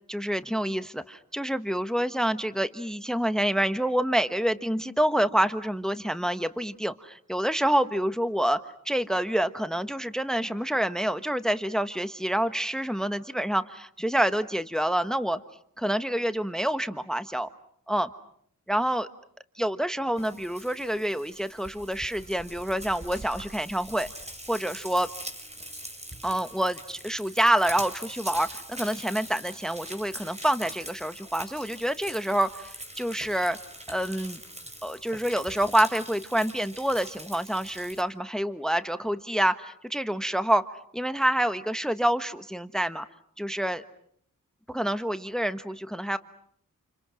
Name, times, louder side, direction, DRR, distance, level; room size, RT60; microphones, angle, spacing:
voice 1, 0.1-8.6 8.8-15.4 15.8-17.5 17.9-18.1 18.7-19.1 19.5-24.1 24.5-25.1 26.2-33.6 33.9-34.4 34.8-40.6 40.9-43.0 43.4-43.8 44.7-46.2, right 1 dB, ahead, 11 dB, 1.2 m, -27 dB
Frying (food), 20.2-38.0, right 1 dB, 20° right, 4.5 m, -42 dB
29.5 x 29.0 x 6.3 m, 0.66 s
wide cardioid pair, 60°, 33 cm